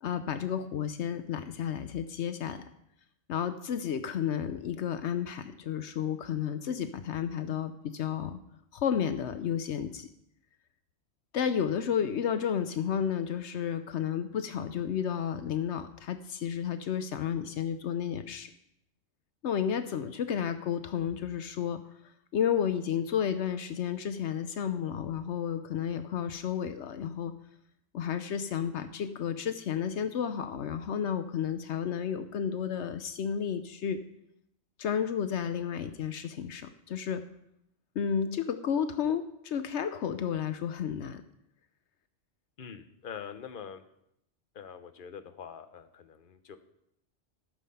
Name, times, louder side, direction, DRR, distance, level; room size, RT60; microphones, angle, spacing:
voice 1, 0.0-2.6 3.3-8.4 8.7-10.1 11.3-18.5 19.4-21.8 22.3-27.3 27.9-34.0 34.8-37.2 38.0-41.2, left 8 dB, 80° left, 10 dB, 1.0 m, -32 dB
voice 2, 42.6-43.8 44.5-46.6, left 7 dB, 50° left, 9 dB, 1.1 m, -44 dB
13.5 x 7.4 x 5.6 m, 0.77 s
omnidirectional pair, 1.2 m